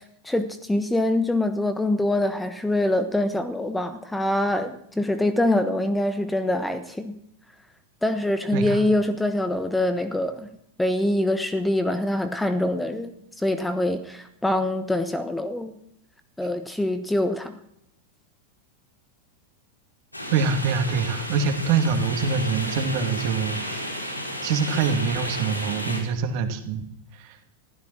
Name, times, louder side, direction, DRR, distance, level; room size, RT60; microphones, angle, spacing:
voice 1, 0.0-7.2 8.0-10.5 10.8-15.8 16.4-17.6, left 1 dB, 5° left, 10 dB, 1.2 m, -24 dB
voice 2, 8.5-8.9 20.3-23.8 24.4-26.9 27.1-27.4, right 5 dB, 45° right, 7 dB, 2.4 m, -25 dB
sound 1, 20.1-26.0, equal, 85° left, 4.4 m, -32 dB
15.5 x 13.5 x 6.2 m, 0.76 s
figure-of-eight pair, 90°, 0 cm